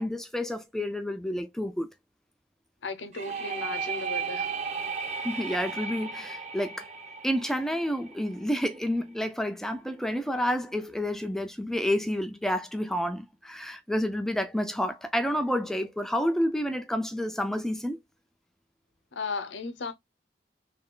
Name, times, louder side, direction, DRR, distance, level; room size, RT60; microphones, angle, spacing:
voice 1, 0.0-1.9 5.2-6.9 7.2-18.0, equal, 5° left, 0.3 m, -29 dB
voice 2, 2.8-4.5 19.1-19.9, left 4 dB, 85° left, 0.7 m, -35 dB
sound 1, 3.1-8.8, right 5 dB, 40° right, 0.7 m, -35 dB
3.2 x 2.3 x 3.6 m
head